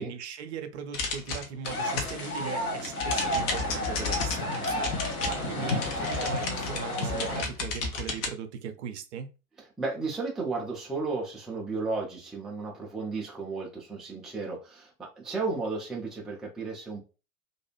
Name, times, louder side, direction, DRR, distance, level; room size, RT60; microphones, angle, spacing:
voice 1, 0.0-9.3, right 7 dB, 55° right, 0.6 m, -39 dB
sound 1, 0.9-2.3 2.6-8.3, left 4 dB, 45° left, 0.8 m, -33 dB
sound 2, 1.6-7.4, left 1 dB, 85° left, 0.8 m, -31 dB
voice 2, 5.3-5.9 9.8-17.0, right 3 dB, ahead, 0.4 m, -34 dB
2.6 x 2.3 x 2.9 m
figure-of-eight pair, 85°, 42 cm